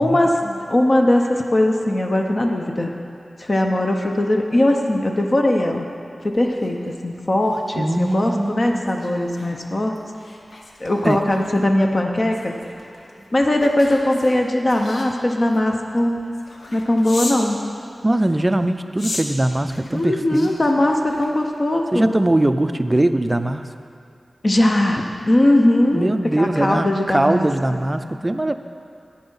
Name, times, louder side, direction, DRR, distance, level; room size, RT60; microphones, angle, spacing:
voice 1, 0.0-2.9 3.4-5.8 6.2-9.9 10.8-12.5 13.3-16.2 16.7-17.6 19.9-22.1 24.4-27.8, left 1 dB, 40° left, 2 dB, 0.7 m, -20 dB
sound 1, 6.3-17.5 18.1-21.8 22.2-22.4, left 2 dB, 75° left, 1.0 m, -38 dB
voice 2, 7.8-8.9 11.0-11.2 18.0-20.5 21.9-23.6 25.9-28.5, right 1 dB, 25° right, 10 dB, 0.4 m, -21 dB
8.8 x 7.8 x 5.5 m, 2.5 s
wide cardioid pair, 80°, 0 cm